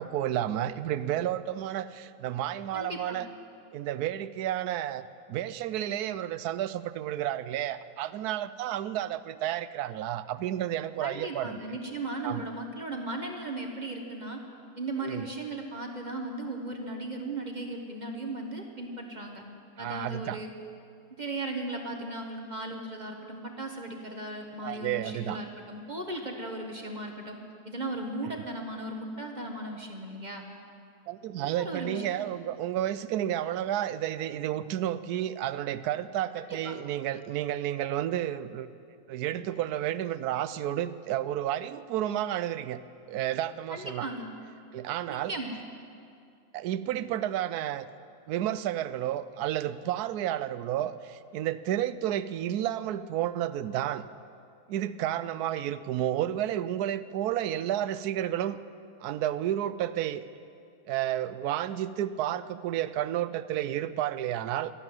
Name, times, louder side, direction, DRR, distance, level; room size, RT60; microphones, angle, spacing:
voice 1, 0.0-3.3 3.7-5.0 5.3-11.6 12.2-12.4 15.0-15.3 19.8-20.4 24.6-25.4 31.1-38.7 39.1-42.8 43.1-44.1 44.7-45.3 46.5-47.9 48.3-54.1 54.7-58.6 59.0-60.2 60.9-64.7, right 12 dB, 80° right, 15 dB, 1.1 m, -31 dB
voice 2, 2.7-3.2 11.0-14.4 14.7-19.4 19.8-20.5 21.2-27.4 27.6-30.4 31.4-32.3 36.4-36.7 43.7-44.3 45.1-45.6, right 2 dB, 30° right, 3 dB, 1.4 m, -37 dB
13.0 x 12.5 x 8.9 m, 2.4 s
omnidirectional pair, 1.6 m